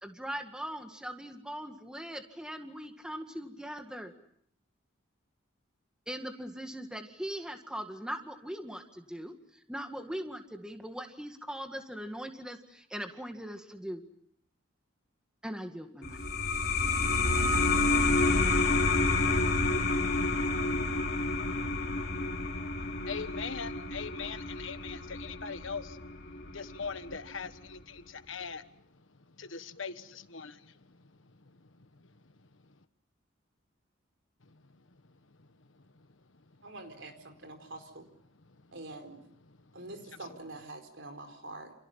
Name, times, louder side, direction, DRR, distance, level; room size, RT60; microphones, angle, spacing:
voice 1, 0.0-4.1 6.1-14.1 15.4-16.2, equal, 5° right, 1.9 m, -40 dB
sound 1, 16.0-27.2, left 3 dB, 55° left, 3.0 m, -29 dB
voice 2, 23.0-26.0 26.5-28.6 29.4-30.7, left 5 dB, 75° left, 1.4 m, -40 dB
voice 3, 36.6-38.1 38.7-39.2 39.7-41.7, right 2 dB, 65° right, 4.4 m, -45 dB
29.0 x 28.5 x 5.7 m
head